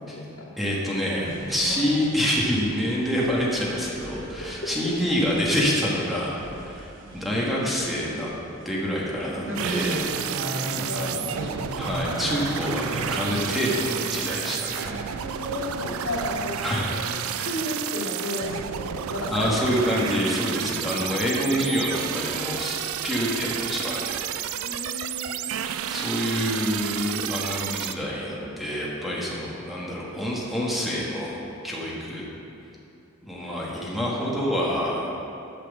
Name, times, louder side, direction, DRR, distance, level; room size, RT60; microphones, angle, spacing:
voice 1, 0.0-0.5 4.1-4.9 10.4-11.1 15.2-17.0 17.4-19.8 24.5-25.6 33.4-33.7, left 1 dB, 75° left, -5 dB, 2.3 m, -34 dB
voice 2, 0.6-8.3 8.6-10.1 10.9-11.5 11.7-15.0 16.6-16.9 17.4-17.5 19.2-22.8 23.0-24.2 25.9-32.3 33.2-35.1, equal, ahead, -5 dB, 1.3 m, -27 dB
sound 1, 1.2-16.5, right 1 dB, 65° right, 1.1 m, -37 dB
sound 2, 9.5-27.9, right 10 dB, 90° right, 0.4 m, -31 dB
8.6 x 6.1 x 7.0 m, 2.6 s
head